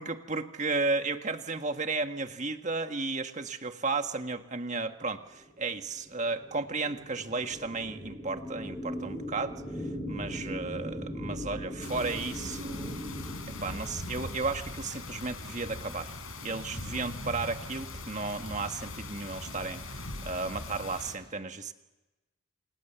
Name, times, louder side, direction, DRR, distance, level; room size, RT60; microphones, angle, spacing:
voice 1, 0.0-12.9 13.6-16.1 16.4-21.7, right 3 dB, 35° right, 7 dB, 1.7 m, -34 dB
sound 1, 5.3-14.0, equal, 5° left, 7.1 m, -40 dB
sound 2, 11.8-21.1, left 2 dB, 70° left, 5.0 m, -40 dB
29.0 x 28.0 x 7.2 m, 1.1 s
head